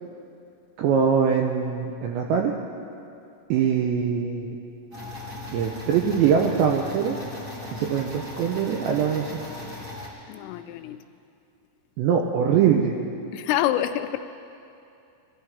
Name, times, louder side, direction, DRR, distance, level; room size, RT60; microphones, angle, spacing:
voice 1, 0.8-2.5 3.5-4.5 5.5-7.2 7.7-9.3 12.0-12.9, right 7 dB, 90° right, 1 dB, 2.6 m, -22 dB
sound 1, 4.9-10.1, left 2 dB, 35° right, 1.3 m, -38 dB
voice 2, 10.3-11.0 13.3-14.2, left 12 dB, 85° left, 9 dB, 3.1 m, -26 dB
23.0 x 12.0 x 3.5 m, 2.6 s
omnidirectional pair, 5.9 m